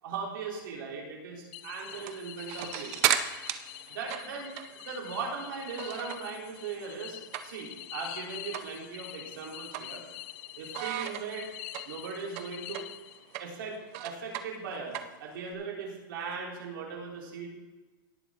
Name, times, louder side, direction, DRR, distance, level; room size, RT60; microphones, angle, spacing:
voice 1, 0.0-2.9 3.9-10.0 10.6-11.5 11.8-12.8 13.4-13.8 14.0-17.5, right 5 dB, 70° right, -2 dB, 3.4 m, -39 dB
sound 1, 1.5-13.5, left 18 dB, 40° left, 0.4 m, -45 dB
sound 2, 1.9-6.4 6.7-7.8 8.1-8.2 8.5-8.7 9.1-10.4 10.7-15.5, right 11 dB, 45° right, 0.8 m, -34 dB
18.5 x 6.7 x 3.7 m, 1.2 s
supercardioid pair, 145°, 12 cm